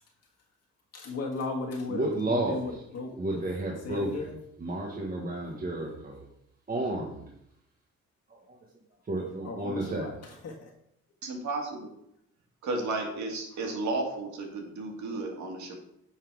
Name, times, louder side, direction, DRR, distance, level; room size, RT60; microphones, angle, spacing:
voice 1, 0.9-3.4 3.8-4.4 6.8-6.9 9.4-10.7, left 3 dB, 55° left, -1 dB, 1.5 m, -36 dB
voice 2, 1.9-2.7 3.2-4.3 4.6-6.2 6.7-7.2 8.3-8.6 9.0-10.1, right 2 dB, 30° right, -2 dB, 1.4 m, -31 dB
voice 3, 11.2-11.9 12.6-15.8, right 2 dB, 70° right, 1 dB, 2.1 m, -33 dB
8.9 x 4.1 x 4.7 m, 0.77 s
cardioid pair, 90°, 30 cm